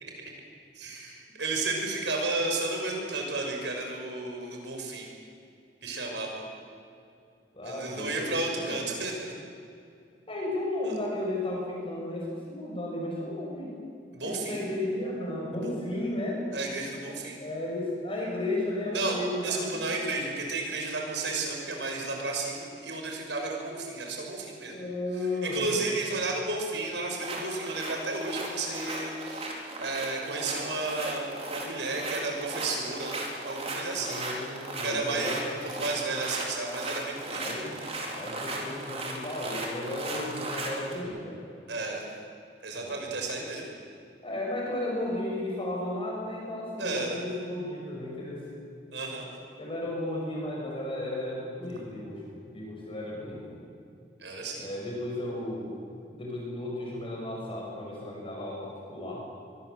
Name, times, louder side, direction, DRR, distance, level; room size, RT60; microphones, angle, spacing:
voice 1, 0.7-5.1 5.8-6.5 7.6-9.3 10.8-10.9 14.1-14.6 15.6-15.7 16.5-17.4 18.9-24.7 25.4-29.5 29.8-33.1 33.4-34.2 34.8-37.5 41.7-42.1 42.6-43.7 46.8-47.2 48.9-49.3 54.2-54.7, right 3 dB, 80° right, 1 dB, 6.3 m, -32 dB
voice 2, 7.5-8.8 10.3-13.8 14.2-16.4 17.4-19.8 24.7-25.7 26.1-26.2 34.0-35.5 37.3-37.8 38.1-41.4 42.7-42.9 44.2-48.4 49.6-53.6 54.6-55.7 56.1-59.2, left 1 dB, 30° left, -3 dB, 6.5 m, -34 dB
sound 1, 27.2-41.0, right 1 dB, 35° right, 4.5 m, -36 dB
24.5 x 23.5 x 8.0 m, 2.4 s
head